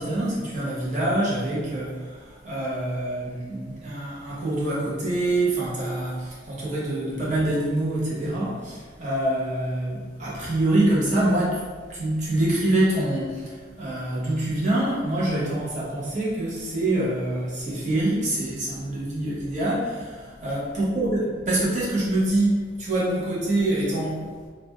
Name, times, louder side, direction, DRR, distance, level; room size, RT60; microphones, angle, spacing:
voice 1, 0.0-11.6 11.9-24.3, right 1 dB, 40° right, -7 dB, 0.9 m, -25 dB
2.5 x 2.2 x 3.3 m, 1.5 s
head